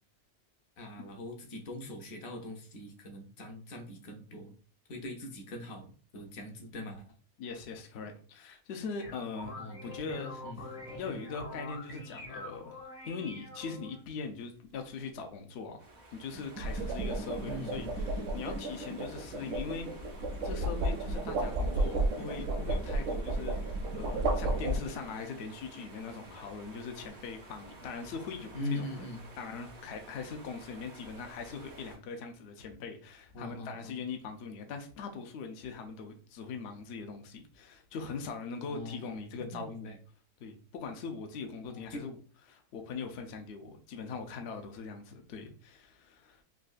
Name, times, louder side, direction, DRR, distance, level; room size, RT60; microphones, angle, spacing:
voice 1, 0.8-4.5 4.9-7.1 9.6-9.9 10.4-10.6 17.4-18.0 28.5-29.3 33.3-34.0 38.7-40.0 41.7-42.0, left 1 dB, 65° left, 1.0 m, -42 dB
voice 2, 7.4-9.6 9.8-10.4 11.0-20.0 20.4-29.0 29.4-39.9 40.4-42.2 42.5-46.4, left 5 dB, 85° left, 0.5 m, -41 dB
sound 1, 8.7-14.0, left 2 dB, 35° left, 0.5 m, -45 dB
sound 2, 10.9-11.2 16.3-25.2, right 2 dB, 65° right, 0.8 m, -33 dB
sound 3, 15.8-32.0, right 2 dB, 85° right, 0.4 m, -52 dB
3.7 x 2.3 x 2.4 m
omnidirectional pair, 1.7 m